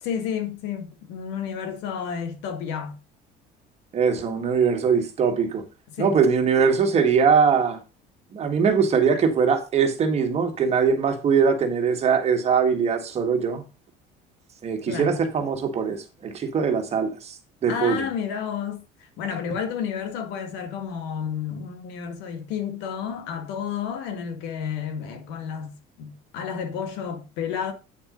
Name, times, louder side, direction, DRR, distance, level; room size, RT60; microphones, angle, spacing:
voice 1, 0.0-3.0 5.9-6.2 14.8-15.2 17.7-27.7, left 7 dB, 75° left, 2.0 m, -31 dB
voice 2, 3.9-5.6 6.0-7.8 8.3-13.6 14.6-17.3 17.6-18.0, right 6 dB, 35° right, 1.7 m, -21 dB
8.8 x 4.4 x 5.3 m
cardioid pair, 130°, 18 cm